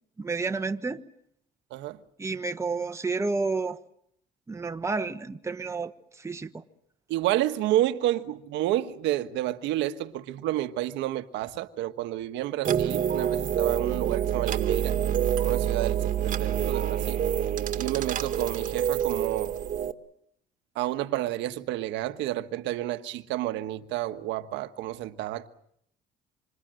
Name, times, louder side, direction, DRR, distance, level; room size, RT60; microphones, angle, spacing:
voice 1, 0.2-1.0 2.2-3.8 4.5-6.6, right 4 dB, 15° right, 1.3 m, -30 dB
voice 2, 7.1-14.9 15.4-17.2 17.7-19.5 20.7-25.5, right 14 dB, 80° right, 1.4 m, -30 dB
sound 1, 12.6-19.9, right 9 dB, 45° right, 1.7 m, -27 dB
26.5 x 26.0 x 7.7 m
cardioid pair, 115°, 19 cm